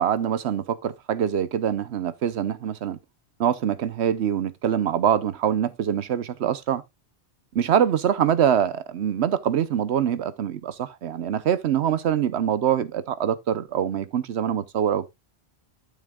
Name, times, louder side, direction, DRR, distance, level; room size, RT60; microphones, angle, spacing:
voice 1, 0.0-3.0 3.4-6.8 7.5-15.1, right 9 dB, 75° right, 1.0 m, -24 dB
12.5 x 7.0 x 2.3 m
omnidirectional pair, 1.1 m